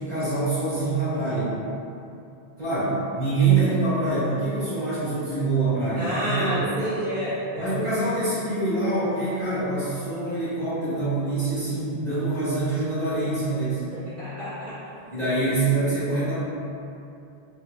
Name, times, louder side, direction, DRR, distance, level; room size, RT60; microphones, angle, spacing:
voice 1, 0.0-1.5 2.6-6.7 7.6-13.8 15.1-16.4, right 3 dB, 45° right, -16 dB, 1.6 m, -25 dB
voice 2, 6.0-8.0 13.9-14.8, equal, 15° right, -15 dB, 1.4 m, -30 dB
4.3 x 2.7 x 2.3 m, 2.7 s
omnidirectional pair, 1.0 m